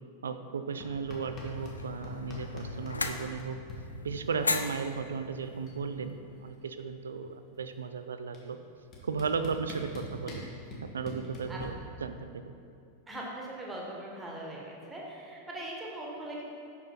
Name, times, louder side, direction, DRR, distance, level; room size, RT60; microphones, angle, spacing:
voice 1, 0.2-3.6 4.0-6.1 6.4-8.6 9.0-10.4 10.8-12.4, right 5 dB, 70° right, 10 dB, 0.3 m, -35 dB
sound 1, 0.8-3.8 5.1-5.2 5.4-5.8 6.1-7.5 8.3-8.4 8.9-11.6, left 1 dB, 30° left, 1.3 m, -43 dB
sound 2, 1.1-6.5, left 3 dB, 80° left, 0.3 m, -38 dB
voice 2, 13.1-16.4, right 1 dB, 15° right, -3 dB, 1.4 m, -40 dB
5.8 x 5.4 x 4.4 m, 2.6 s
figure-of-eight pair, 90°, 0 cm